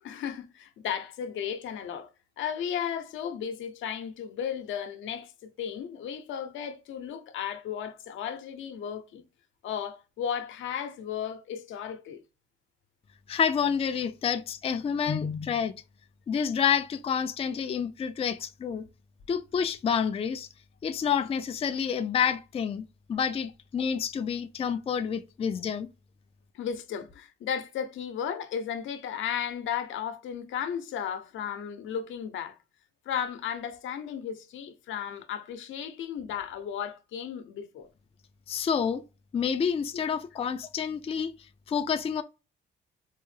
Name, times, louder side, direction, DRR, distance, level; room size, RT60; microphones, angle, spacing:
voice 1, 0.0-2.1 2.4-9.2 9.6-12.2 26.5-32.6 33.1-37.9, left 8 dB, 75° left, 0.7 m, -34 dB
voice 2, 13.3-15.8 16.3-18.9 19.3-20.5 20.8-25.9 38.5-39.0 39.3-41.3 41.7-42.2, left 7 dB, 30° left, 0.4 m, -28 dB
4.5 x 2.0 x 3.2 m
cardioid pair, 90°, 20 cm